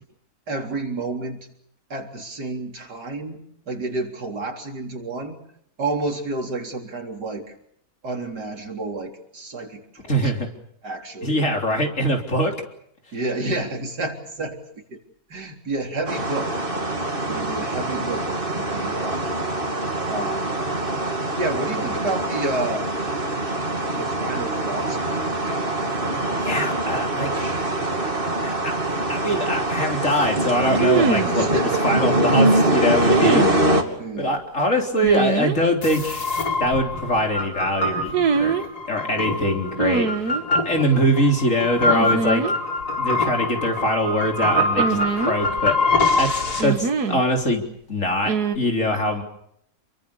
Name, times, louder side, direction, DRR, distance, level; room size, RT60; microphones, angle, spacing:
voice 1, 0.5-1.4 1.9-5.4 5.8-7.5 8.0-10.4 10.8-11.5 13.1-14.6 14.9-15.0 15.3-16.5 17.3-19.6 20.1-20.6 21.1-22.9 23.9-25.2 31.3-31.8 34.0-34.4, right 2 dB, 90° right, 2 dB, 4.3 m, -30 dB
voice 2, 10.1-10.5 11.2-12.5 26.4-27.3 28.4-28.7 29.1-31.5 31.8-33.7 34.2-36.3 36.6-38.1 38.4-38.6 38.9-40.1 40.5-42.4 43.0-49.2, equal, 50° left, 2 dB, 4.2 m, -23 dB
sound 1, 16.1-33.8, right 1 dB, 35° right, 2.9 m, -24 dB
sound 2, 28.8-28.9 30.8-31.4 33.1-33.6 35.0-35.6 38.1-38.7 39.8-40.4 41.9-42.5 42.8-42.9 44.8-45.7 46.6-47.2 48.2-48.6, right 6 dB, 70° right, 2.0 m, -23 dB
sound 3, 35.8-46.6, left 2 dB, 70° left, 5.7 m, -24 dB
28.5 x 23.0 x 7.1 m, 0.72 s
omnidirectional pair, 1.7 m